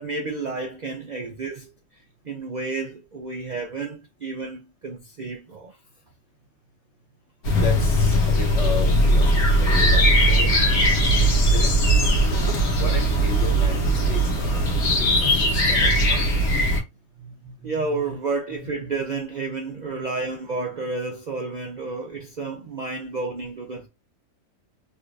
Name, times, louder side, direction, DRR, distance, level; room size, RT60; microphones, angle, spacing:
voice 1, 0.0-1.7 2.2-5.8 11.1-11.2 12.5-12.6 17.6-23.9, right 3 dB, 85° right, 0.4 m, -31 dB
sound 1, 7.4-16.8, equal, 85° left, 1.4 m, -19 dB
voice 2, 7.6-10.6 11.4-11.7 12.8-15.4 15.7-16.3 17.2-18.2, left 4 dB, 55° left, 1.5 m, -35 dB
3.3 x 2.9 x 2.5 m
omnidirectional pair, 1.5 m